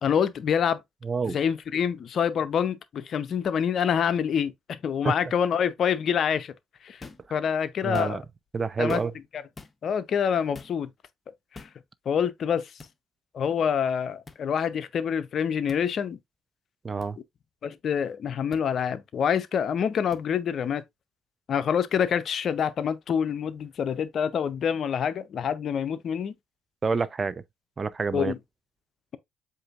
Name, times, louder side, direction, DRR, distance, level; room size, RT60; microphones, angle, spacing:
voice 1, 0.0-0.8 1.3-6.5 6.8-7.0 7.3-8.2 8.8-9.0 9.3-9.4 9.8-10.9 11.5-11.7 12.1-12.7 13.3-16.2 17.6-20.8 21.5-26.3 28.1-28.4, left 8 dB, 55° left, 0.6 m, -26 dB
voice 2, 1.0-1.4 5.0-5.1 7.8-8.2 8.5-9.1 16.8-17.2 26.8-27.4 27.8-28.3, right 4 dB, 35° right, 0.4 m, -27 dB
sound 1, 7.0-7.3 7.8-8.4 8.9-9.3 9.6-9.8 10.5-10.8 11.5-11.8 12.8-12.9 14.3-14.4 15.7-15.8 17.0-17.1 18.5-18.6 20.1-20.2, left 3 dB, 30° left, 0.9 m, -45 dB
7.7 x 2.7 x 2.4 m
hypercardioid pair, 50°, 0 cm